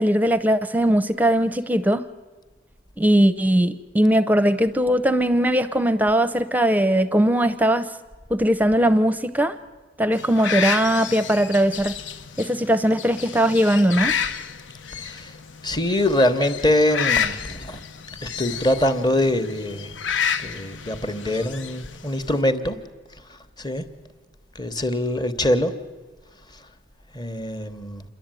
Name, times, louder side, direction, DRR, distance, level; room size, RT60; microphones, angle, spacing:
voice 1, 0.0-2.1 3.0-7.9 8.3-9.6 10.0-12.0 12.4-14.2, right 1 dB, 10° right, 0.7 m, -20 dB
sound 1, 10.1-22.4, left 7 dB, 80° left, 0.8 m, -30 dB
voice 2, 14.9-15.4 15.6-17.8 18.2-19.9 20.4-22.8 23.1-23.9 24.5-25.8 26.5-26.7 27.1-28.0, left 1 dB, 20° left, 1.1 m, -24 dB
28.5 x 11.5 x 9.0 m
head